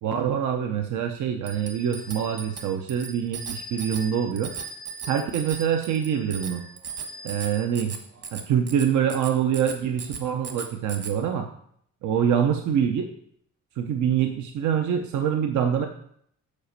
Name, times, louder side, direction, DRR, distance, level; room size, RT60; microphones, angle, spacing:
voice 1, 0.0-4.5 5.1-6.6 7.2-8.0 8.3-11.5 12.0-13.1 13.8-15.9, right 8 dB, 75° right, 5 dB, 0.9 m, -25 dB
Bicycle bell, 1.4-11.1, right 5 dB, 55° right, 1.6 m, -38 dB
8.6 x 5.1 x 6.6 m, 0.68 s
cardioid pair, 90°, 30 cm